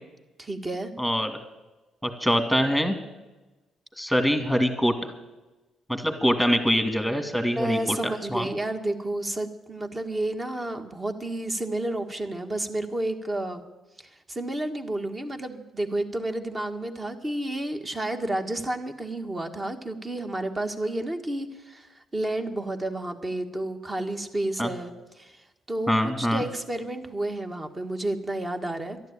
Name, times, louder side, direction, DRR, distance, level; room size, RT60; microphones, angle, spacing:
voice 1, 0.4-0.9 7.4-13.6 14.3-24.9 25.2-25.4 25.7-29.0, right 1 dB, 25° right, 6 dB, 1.6 m, -31 dB
voice 2, 1.0-1.3 2.0-3.0 4.0-4.9 5.9-8.5 24.6-24.7 25.9-26.4, equal, 5° right, 6 dB, 2.3 m, -24 dB
12.0 x 11.5 x 8.8 m, 1.1 s
cardioid pair, 90°, 0 cm